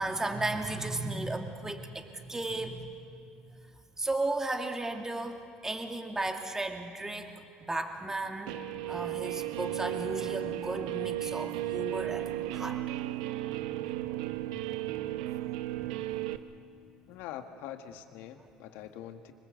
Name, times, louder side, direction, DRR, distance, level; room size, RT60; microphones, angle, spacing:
voice 1, 0.0-3.0 4.0-8.6 8.9-12.8 14.5-14.7, right 2 dB, 15° right, 4 dB, 2.4 m, -35 dB
Guitar, 8.5-16.4, right 14 dB, 80° right, 0.8 m, -34 dB
voice 2, 17.1-19.3, left 11 dB, 70° left, 7 dB, 1.8 m, -44 dB
25.0 x 21.0 x 8.2 m, 2.3 s
hypercardioid pair, 75°, 3 cm